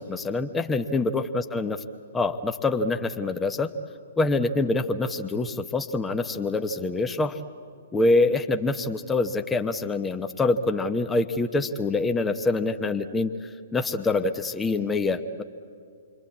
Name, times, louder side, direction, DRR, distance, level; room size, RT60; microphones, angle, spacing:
voice 1, 0.0-1.8 2.1-3.7 4.2-7.4 7.9-15.4, left 3 dB, 10° left, 7 dB, 0.9 m, -25 dB
28.5 x 23.0 x 8.5 m, 2.3 s
figure-of-eight pair, 120°, 0 cm